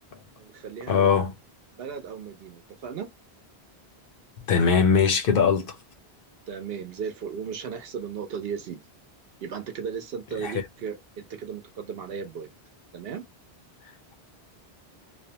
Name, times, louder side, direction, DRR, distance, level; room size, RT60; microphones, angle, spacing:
voice 1, 0.4-1.2 1.7-3.1 6.5-8.8 9.4-12.5 12.9-13.2, right 7 dB, 70° right, 0.8 m, -36 dB
voice 2, 0.9-1.3 4.5-5.8 10.4-10.5, left 6 dB, 65° left, 0.7 m, -21 dB
2.5 x 2.1 x 2.6 m
omnidirectional pair, 1.1 m